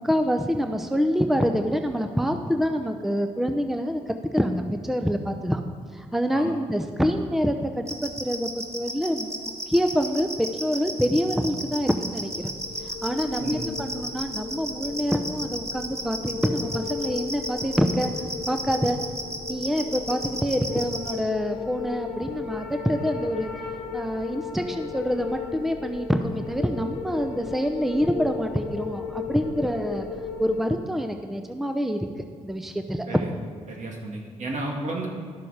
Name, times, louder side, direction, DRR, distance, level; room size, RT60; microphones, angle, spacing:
voice 1, 0.0-5.6 5.9-9.3 9.7-12.5 12.8-18.1 18.5-19.0 19.5-23.5 23.9-30.1 30.4-32.1 32.4-33.1, equal, ahead, 6 dB, 0.7 m, -26 dB
sound 1, 7.9-21.1, right 1 dB, 20° right, 1.7 m, -33 dB
sound 2, 12.2-30.6, left 7 dB, 80° left, 1.2 m, -36 dB
voice 2, 33.7-35.1, right 2 dB, 60° right, 0 dB, 2.1 m, -32 dB
11.5 x 6.8 x 4.9 m, 2.1 s
supercardioid pair, 55°, 14 cm